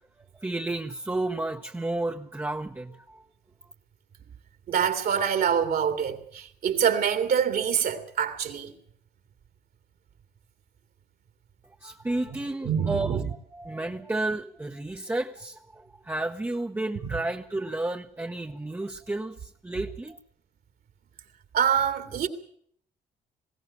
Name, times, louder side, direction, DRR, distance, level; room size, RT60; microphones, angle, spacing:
voice 1, 0.4-3.2 11.8-13.2 13.5-19.4 19.6-20.2, right 2 dB, 10° right, 0.9 m, -31 dB
voice 2, 4.7-8.7 12.6-13.3 17.0-17.2 21.5-22.3, right 8 dB, 65° right, 2.5 m, -25 dB
20.5 x 16.5 x 8.8 m
cardioid pair, 80°, 17 cm